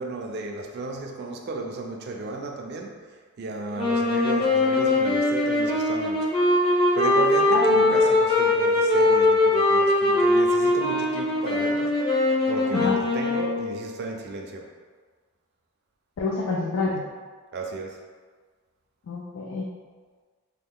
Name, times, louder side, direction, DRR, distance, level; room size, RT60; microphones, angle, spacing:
voice 1, 0.0-2.9 3.4-6.3 7.0-7.6 7.9-11.9 12.5-14.6 17.5-18.0, right 2 dB, 50° right, 2 dB, 0.4 m, -34 dB
sound 1, 3.7-13.7, left 2 dB, 25° left, 0.6 m, -21 dB
voice 2, 7.5-8.0 12.7-13.0 16.2-17.0 19.1-19.7, left 3 dB, 70° left, -2 dB, 0.4 m, -27 dB
3.0 x 2.2 x 3.5 m, 1.5 s
head